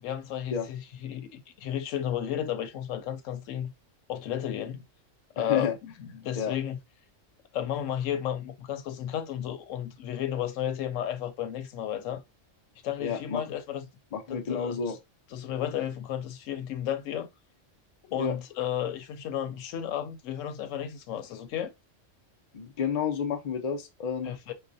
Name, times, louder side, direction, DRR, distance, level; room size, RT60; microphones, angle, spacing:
voice 1, 0.0-3.7 4.1-4.8 5.4-6.8 7.5-12.2 12.8-13.8 14.3-14.8 15.3-17.3 18.1-21.7 24.2-24.5, left 10 dB, 90° left, 1.0 m, -33 dB
voice 2, 5.4-5.7 6.4-6.5 13.0-13.4 14.1-15.0 18.1-18.3 22.5-24.3, left 6 dB, 45° left, 0.5 m, -30 dB
4.7 x 2.1 x 2.5 m
omnidirectional pair, 1.3 m